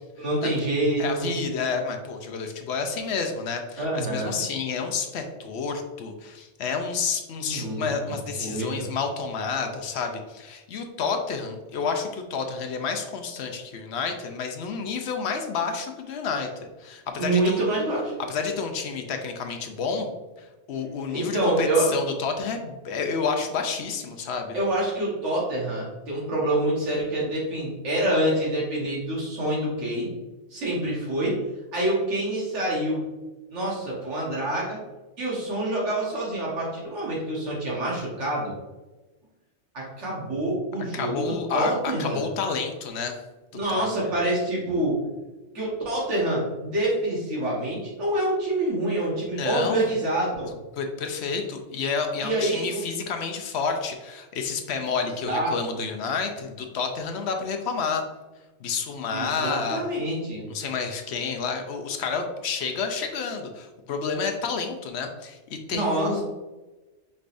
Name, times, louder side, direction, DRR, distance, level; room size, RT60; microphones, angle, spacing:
voice 1, 0.2-1.3 3.8-4.4 7.4-8.9 17.2-18.1 21.1-21.9 24.5-30.1 30.5-31.4 31.7-33.0 33.5-34.8 35.2-38.5 39.7-42.2 43.5-45.0 45.5-50.5 52.2-52.8 55.3-55.5 59.1-60.5 65.7-66.2, right 1 dB, 80° right, -5 dB, 1.6 m, -26 dB
voice 2, 1.0-17.6 18.3-20.1 20.4-24.6 40.9-43.2 43.7-43.9 49.3-49.9 50.7-58.0 58.6-59.9 60.5-66.2, left 5 dB, 70° left, 4 dB, 0.8 m, -30 dB
5.2 x 3.4 x 2.5 m, 1.1 s
omnidirectional pair, 1.2 m